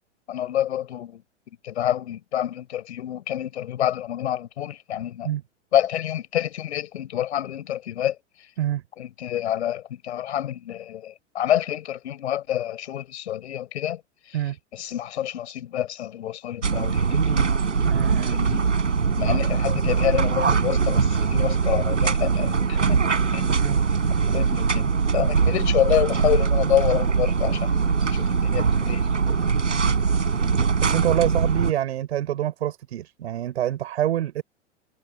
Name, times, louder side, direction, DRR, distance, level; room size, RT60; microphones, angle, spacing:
voice 1, 0.3-1.2 1.6-5.3 5.7-8.2 9.0-14.0 14.3-14.4 14.7-17.5 18.3-18.7 19.1-23.0 23.3-23.5 24.3-27.7 28.1-29.1, left 11 dB, 65° left, 7.7 m, -27 dB
sound 1, 16.6-31.7, right 5 dB, 80° right, 7.3 m, -22 dB
voice 2, 17.8-18.4 23.6-23.8 30.8-34.4, right 12 dB, 65° right, 7.6 m, -26 dB
figure-of-eight pair, 95°, 36 cm